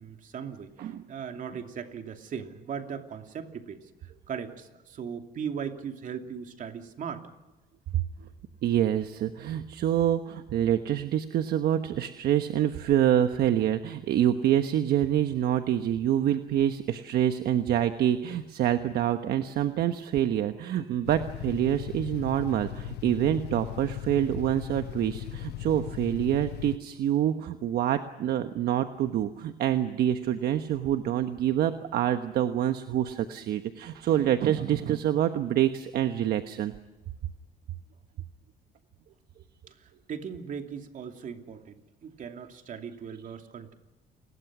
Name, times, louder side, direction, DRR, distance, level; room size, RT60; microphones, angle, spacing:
voice 1, 0.0-7.3 39.7-43.7, right 7 dB, 50° right, 5 dB, 2.7 m, -38 dB
voice 2, 7.9-8.3 8.6-36.7, right 11 dB, 65° right, 8 dB, 1.2 m, -26 dB
sound 1, 21.0-26.8, left 18 dB, 75° left, 0.7 m, -38 dB
29.5 x 21.0 x 6.2 m, 1.1 s
cardioid pair, 110°, 17 cm